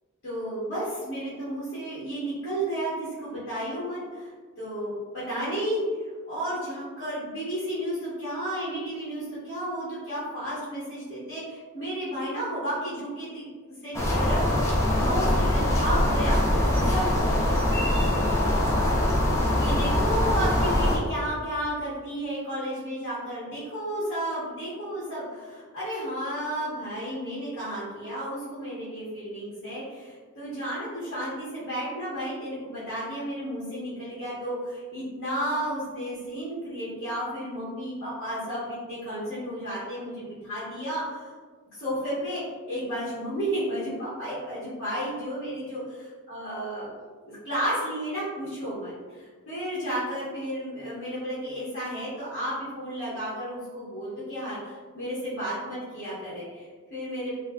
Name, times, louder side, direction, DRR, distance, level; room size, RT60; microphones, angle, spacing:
voice 1, 0.2-4.3 4.6-5.8 6.3-13.5 13.8-14.4 14.9-16.4 16.7-17.8 19.6-41.3 41.7-46.9 47.2-57.3, right 1 dB, 55° left, -10 dB, 1.0 m, -32 dB
sound 1, 13.9-21.0, left 1 dB, 15° left, 0.4 m, -23 dB
3.2 x 2.2 x 2.3 m, 1.5 s
head